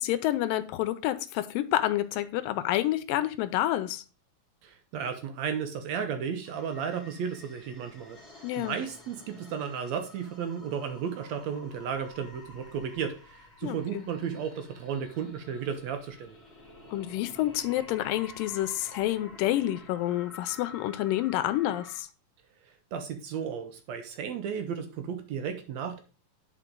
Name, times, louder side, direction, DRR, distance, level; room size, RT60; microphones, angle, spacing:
voice 1, 0.0-4.0 8.4-8.8 13.6-14.0 16.9-22.1, left 14 dB, 90° left, 2.3 m, -28 dB
voice 2, 4.6-8.2 8.6-16.4 22.6-26.0, right 7 dB, 75° right, 1.6 m, -34 dB
sound 1, 6.4-22.0, left 2 dB, ahead, 2.2 m, -51 dB
10.5 x 4.5 x 3.8 m
omnidirectional pair, 3.9 m